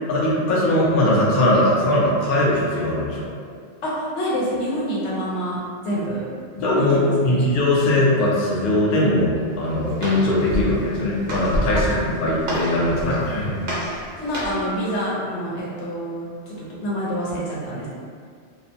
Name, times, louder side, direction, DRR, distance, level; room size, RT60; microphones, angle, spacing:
voice 1, 0.1-3.3 6.6-13.6, left 1 dB, 60° left, -5 dB, 0.7 m, -20 dB
voice 2, 3.8-5.6 5.8-6.2 6.9-7.4 14.2-17.9, equal, 85° left, -7 dB, 1.0 m, -27 dB
Walk footsteps, 9.4-14.7, equal, 55° right, 0.8 m, -29 dB
2.4 x 2.1 x 2.6 m, 2.1 s
omnidirectional pair, 1.1 m